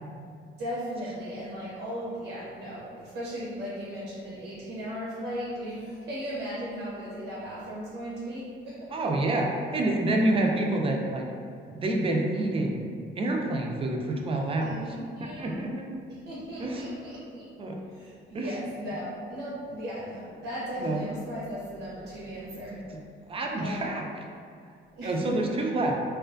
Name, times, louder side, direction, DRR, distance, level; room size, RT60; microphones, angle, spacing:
voice 1, 0.6-8.9 14.6-15.6 16.1-17.5 17.9-23.0 23.6-24.0 25.0-25.3, equal, 75° right, -7 dB, 0.6 m, -37 dB
voice 2, 8.9-11.3 11.7-12.9 13.2-14.7 15.2-15.9 16.6-16.8 17.6-17.8 18.3-18.5 20.8-21.0 22.4-23.0 23.3-24.0 25.0-25.9, right 2 dB, 30° right, 1 dB, 0.3 m, -28 dB
2.4 x 2.2 x 2.4 m, 2.2 s
cardioid pair, 90°, 20 cm